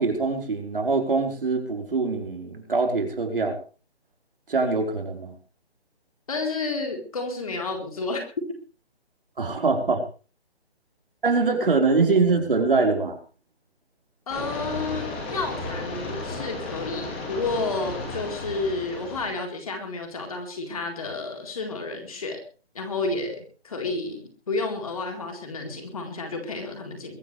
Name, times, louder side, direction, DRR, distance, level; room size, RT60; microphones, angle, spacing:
voice 1, 0.0-3.5 4.5-5.3 9.4-10.0 11.2-13.2, right 4 dB, 55° right, 3 dB, 4.6 m, -23 dB
voice 2, 6.3-8.2 14.3-22.4 22.7-27.2, left 3 dB, 35° left, 3 dB, 4.1 m, -31 dB
sound 1, 14.3-19.3, left 2 dB, 10° left, 2.2 m, -34 dB
23.0 x 15.0 x 3.4 m, 0.37 s
hypercardioid pair, 175°, 32 cm